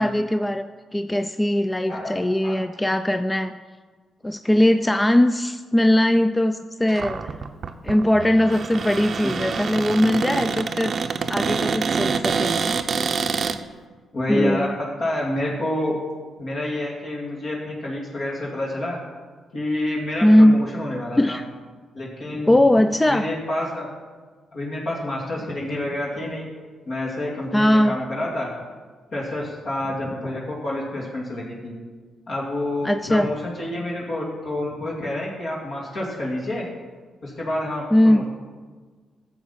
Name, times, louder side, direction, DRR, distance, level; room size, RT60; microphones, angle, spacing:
voice 1, 0.0-3.5 4.2-7.3 7.8-11.0 11.3-12.5 14.3-14.8 20.2-20.7 21.2-21.4 22.5-23.3 27.5-28.0 32.8-33.3 37.9-38.2, left 1 dB, 15° left, 10 dB, 0.4 m, -19 dB
voice 2, 1.9-2.6 14.1-16.0 16.4-19.0 19.5-21.4 21.9-22.6 23.1-23.9 24.5-26.4 26.9-28.5 29.1-31.7 32.3-36.6 37.2-38.3, left 1 dB, 60° left, -4 dB, 2.2 m, -28 dB
Cupboard open or close, 6.9-13.6, right 5 dB, 55° right, 0.6 m, -26 dB
11.0 x 7.3 x 5.7 m, 1.5 s
supercardioid pair, 55°, 0 cm